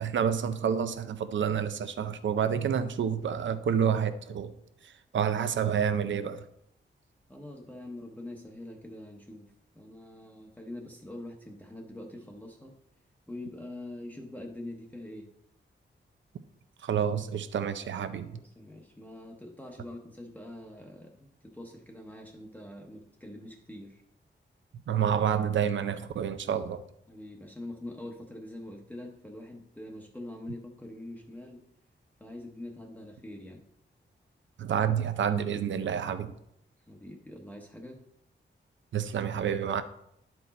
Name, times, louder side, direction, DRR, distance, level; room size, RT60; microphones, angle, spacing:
voice 1, 0.0-4.5 4.8-6.4 16.8-18.3 24.9-26.8 34.6-36.3 38.9-39.8, right 8 dB, 75° right, 11 dB, 0.5 m, -29 dB
voice 2, 7.3-12.7 13.3-15.3 18.3-24.0 27.1-31.6 32.2-33.6 36.9-38.0, left 1 dB, 10° left, -1 dB, 0.8 m, -44 dB
11.0 x 4.6 x 4.1 m, 0.75 s
wide cardioid pair, 140°, 20 cm